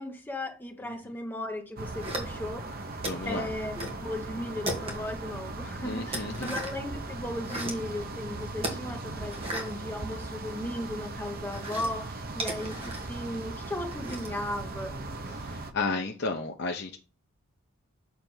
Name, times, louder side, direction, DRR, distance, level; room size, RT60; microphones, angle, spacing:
voice 1, 0.0-2.7 3.3-15.0, left 1 dB, 10° left, 1.0 m, -36 dB
voice 2, 0.8-1.1 3.0-3.5 5.8-6.5 15.3-17.0, left 3 dB, 50° left, 0.7 m, -33 dB
sound 1, 1.7-15.7, right 2 dB, 40° right, 0.8 m, -38 dB
sound 2, 2.0-2.6 3.0-4.0 4.3-5.2 5.6-6.9 7.3-7.9 8.6-10.6 10.9-14.4, right 1 dB, 25° right, 1.6 m, -37 dB
7.0 x 3.4 x 6.1 m
head